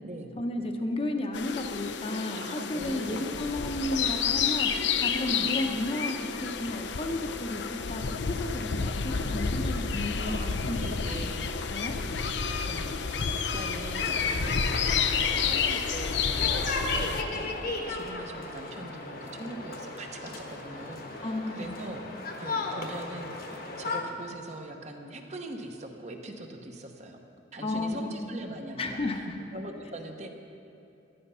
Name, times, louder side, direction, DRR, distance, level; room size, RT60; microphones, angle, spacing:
voice 1, 0.4-4.7 5.0-8.0 8.3-10.8 11.7-11.9 21.2-21.8 27.6-28.3 28.8-29.4, left 1 dB, 30° left, 4 dB, 0.9 m, -33 dB
sound 1, 1.3-17.2, left 6 dB, 70° left, 0.6 m, -30 dB
voice 2, 2.4-3.4 5.3-5.6 10.2-11.5 12.2-15.0 15.3-16.1 16.4-22.0 22.4-27.2 27.5-29.0 29.5-30.4, right 1 dB, 40° right, 3 dB, 1.0 m, -42 dB
sound 2, 14.0-24.0, left 2 dB, 50° left, 1.2 m, -36 dB
13.0 x 10.5 x 5.6 m, 2.8 s
head